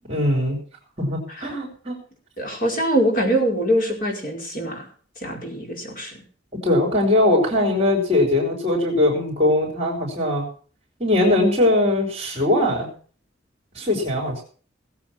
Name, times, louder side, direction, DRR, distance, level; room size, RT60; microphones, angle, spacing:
voice 1, 0.1-0.6 1.0-2.0 6.5-10.5 11.0-12.9 13.7-14.4, left 1 dB, 30° right, -2 dB, 4.6 m, -20 dB
voice 2, 2.4-4.9 5.2-6.1, right 1 dB, 45° left, 1 dB, 4.9 m, -23 dB
19.5 x 8.1 x 6.0 m, 0.43 s
head